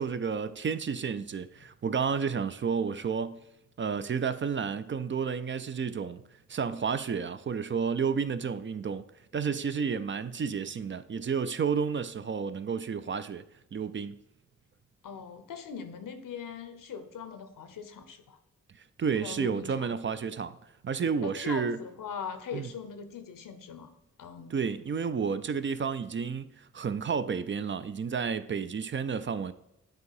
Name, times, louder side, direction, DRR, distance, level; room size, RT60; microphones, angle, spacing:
voice 1, 0.0-3.4 3.8-6.2 6.5-9.0 9.3-13.4 13.7-14.2 19.0-20.6 20.8-21.8 22.5-22.7 24.5-29.5, right 6 dB, 40° right, 0.4 m, -31 dB
voice 2, 15.0-18.4 19.2-19.9 21.2-23.9 24.2-24.6, left 6 dB, 85° left, 0.7 m, -41 dB
7.8 x 2.8 x 4.8 m
cardioid pair, 50°, 32 cm